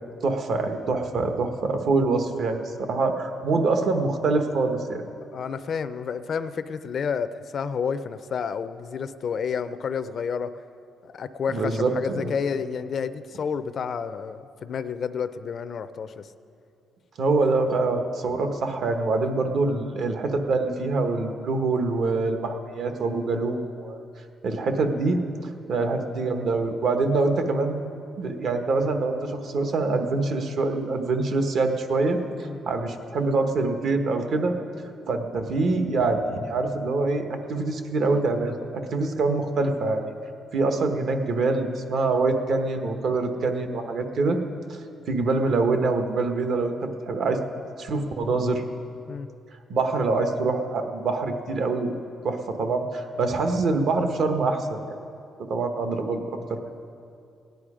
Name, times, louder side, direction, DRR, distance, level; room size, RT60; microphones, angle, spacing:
voice 1, 0.2-5.0 11.5-12.3 17.2-24.0 24.4-25.2 25.7-27.8 28.2-32.2 32.7-34.5 35.1-40.0 40.5-44.4 44.7-44.8 45.1-47.4 47.8-48.6 49.7-51.9 52.2-54.8 55.5-56.2 56.5-56.6, right 3 dB, 55° right, 6 dB, 1.1 m, -25 dB
voice 2, 5.3-10.5 11.0-16.3 25.8-26.0 32.4-32.6 45.3-45.4 49.1-49.3, left 6 dB, 45° left, 11 dB, 0.5 m, -30 dB
17.5 x 10.5 x 5.0 m, 2.6 s
cardioid pair, 150°, 0 cm